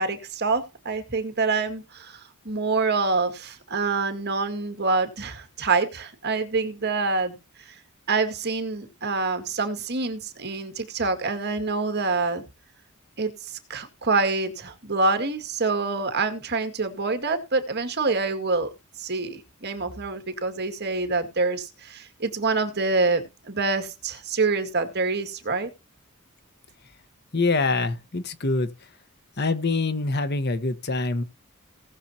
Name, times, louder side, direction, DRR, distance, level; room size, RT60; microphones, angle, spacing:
voice 1, 0.0-2.2 2.5-7.4 8.1-12.4 13.2-18.7 19.0-25.7, right 3 dB, 50° right, 2.1 m, -26 dB
voice 2, 27.3-28.9 29.4-31.2, left 3 dB, 50° left, 1.2 m, -25 dB
19.0 x 6.9 x 2.9 m
head